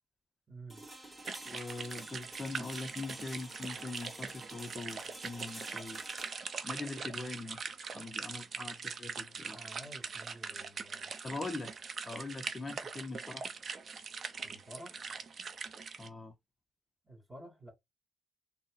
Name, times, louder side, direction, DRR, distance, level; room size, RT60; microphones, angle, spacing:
voice 1, 0.5-0.9 9.5-11.4 14.4-15.0 17.0-17.7, right 1 dB, 25° right, 2.4 m, -51 dB
sound 1, 0.7-10.6, right 1 dB, 5° right, 1.9 m, -51 dB
sound 2, 1.2-16.1, right 5 dB, 45° right, 0.6 m, -42 dB
voice 2, 1.4-6.0 6.6-7.6 7.9-9.6 11.2-11.7 12.0-13.6 16.0-16.4, left 3 dB, 20° left, 0.6 m, -42 dB
3.9 x 2.0 x 3.8 m
cardioid pair, 90°, 0 cm